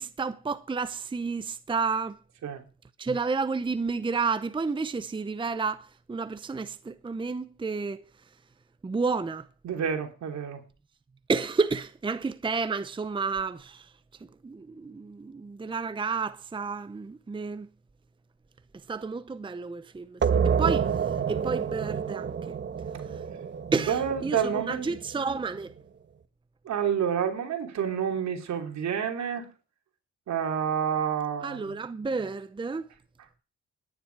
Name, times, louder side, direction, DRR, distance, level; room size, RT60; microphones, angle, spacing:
voice 1, 0.0-2.2 3.0-8.3 8.8-9.5 11.3-13.9 14.2-17.7 18.7-22.6 22.9-23.3 23.7-25.8 31.4-32.9, right 4 dB, 15° right, 0.7 m, -31 dB
voice 2, 9.6-10.6 23.8-24.9 26.6-29.5 30.3-31.6, right 8 dB, 65° right, 3.2 m, -29 dB
sound 1, 20.2-25.6, right 7 dB, 40° right, 1.2 m, -29 dB
19.0 x 10.0 x 4.7 m
cardioid pair, 90°, 30 cm